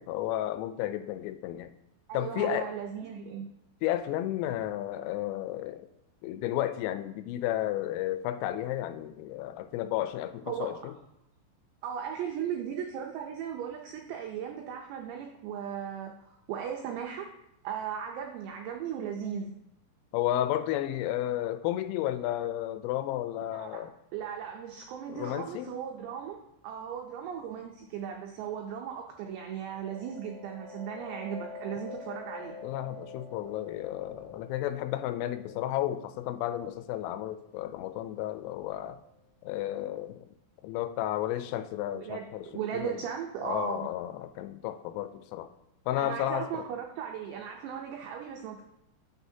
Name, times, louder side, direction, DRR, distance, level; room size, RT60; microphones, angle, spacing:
voice 1, 0.0-1.7 2.1-2.7 3.8-5.9 6.2-10.9 20.1-23.9 25.1-25.7 32.6-39.0 39.4-40.3 40.6-42.5 42.7-43.0 43.4-45.5 45.9-46.6, left 13 dB, 85° left, 10 dB, 3.2 m, -32 dB
voice 2, 2.1-3.5 10.5-10.8 11.8-17.3 17.6-19.5 23.5-23.8 24.1-26.4 26.6-32.5 41.9-43.9 46.0-48.6, right 8 dB, 85° right, 2 dB, 2.4 m, -37 dB
sound 1, 29.5-38.9, left 4 dB, 45° left, 2.5 m, -47 dB
9.2 x 7.3 x 2.8 m, 0.81 s
omnidirectional pair, 5.8 m